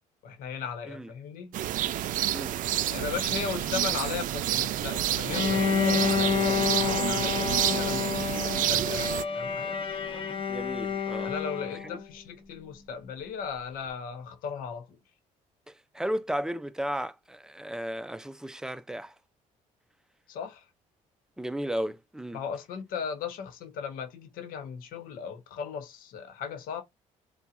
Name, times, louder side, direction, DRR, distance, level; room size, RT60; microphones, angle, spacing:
voice 1, 0.2-1.5 2.9-9.8 11.2-15.0 20.3-20.7 22.3-26.8, left 7 dB, 80° left, 1.1 m, -37 dB
sound 1, 1.5-9.2, right 12 dB, 65° right, 0.4 m, -29 dB
Bowed string instrument, 5.3-12.0, left 6 dB, 40° left, 1.0 m, -29 dB
voice 2, 10.5-11.3 15.7-19.1 21.4-22.4, equal, 5° right, 0.5 m, -34 dB
4.3 x 2.4 x 2.5 m
cardioid pair, 85°, 14 cm